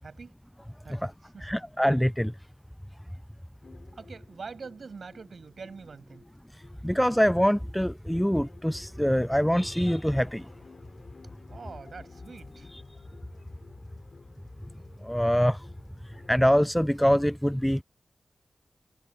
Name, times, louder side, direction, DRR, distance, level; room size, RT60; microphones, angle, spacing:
voice 1, 0.0-0.3 0.8-1.6 3.9-6.2 11.5-12.7, right 5 dB, 75° right, 6.5 m, -44 dB
voice 2, 1.4-2.3 6.8-10.5 15.0-15.6 16.3-17.8, equal, 5° left, 0.4 m, -24 dB
sound 1, 3.6-16.5, left 4 dB, 60° left, 3.2 m, -52 dB
wide cardioid pair, 105°, 0 cm